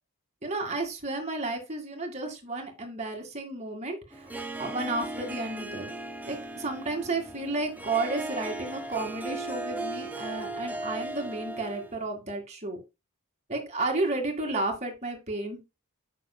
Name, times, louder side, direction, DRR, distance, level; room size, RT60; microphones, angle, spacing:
voice 1, 0.4-4.3 4.6-5.9 6.3-12.8 13.5-15.6, right 2 dB, 30° right, 2 dB, 2.0 m, -32 dB
Harp, 4.1-12.0, right 2 dB, 10° right, 0.7 m, -37 dB
9.3 x 6.2 x 2.2 m, 0.25 s
head